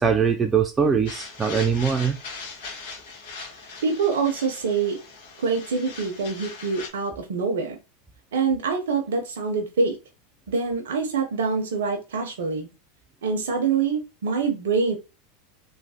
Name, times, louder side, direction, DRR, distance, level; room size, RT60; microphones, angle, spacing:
voice 1, 0.0-2.2, right 6 dB, 20° right, 0.4 m, -22 dB
sound 1, 1.1-6.9, left 4 dB, 70° left, 1.4 m, -40 dB
voice 2, 3.8-5.0 5.4-7.8 8.3-10.0 10.5-12.7 13.2-15.0, right 5 dB, 80° right, 0.6 m, -25 dB
3.1 x 2.1 x 2.7 m
hypercardioid pair, 100°, 0 cm